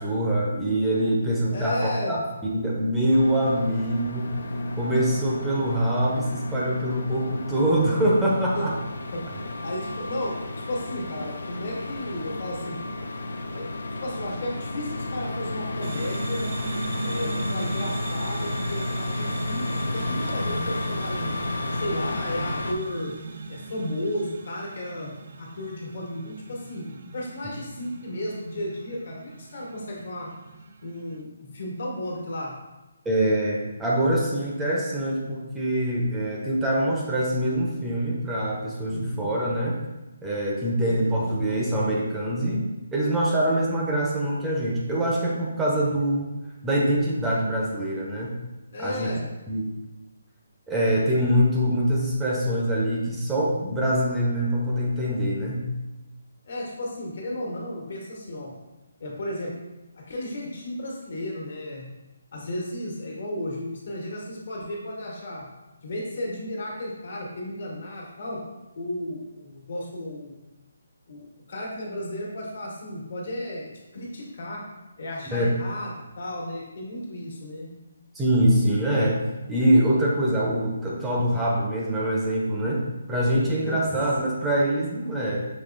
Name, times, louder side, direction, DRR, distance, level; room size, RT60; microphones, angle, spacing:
voice 1, 0.0-4.3 4.8-8.7 33.0-39.8 40.2-42.7 42.9-46.3 46.6-48.4 48.8-49.1 49.5-49.6 50.7-55.7 75.3-75.5 78.1-79.2 79.5-85.4, right 1 dB, 10° right, -4 dB, 0.6 m, -24 dB
voice 2, 1.5-2.2 8.5-8.7 9.1-9.2 9.6-10.4 10.7-12.8 13.5-13.7 14.0-16.5 17.0-21.3 21.7-23.1 23.5-25.1 25.4-26.8 27.1-30.3 30.8-31.3 31.5-32.5 38.9-39.3 40.9-41.2 48.7-49.3 56.4-58.5 59.0-59.5 60.1-61.8 62.3-65.4 65.8-68.4 68.7-70.4 71.1-74.6 75.0-77.7 83.6-83.8 84.2-84.3, left 1 dB, 60° left, -3 dB, 1.4 m, -34 dB
sound 1, 3.1-22.7, left 1 dB, 80° left, 0.5 m, -31 dB
sound 2, 15.8-31.2, right 4 dB, 55° right, 0.4 m, -39 dB
6.1 x 3.0 x 2.5 m, 1.0 s
figure-of-eight pair, 150°, 0 cm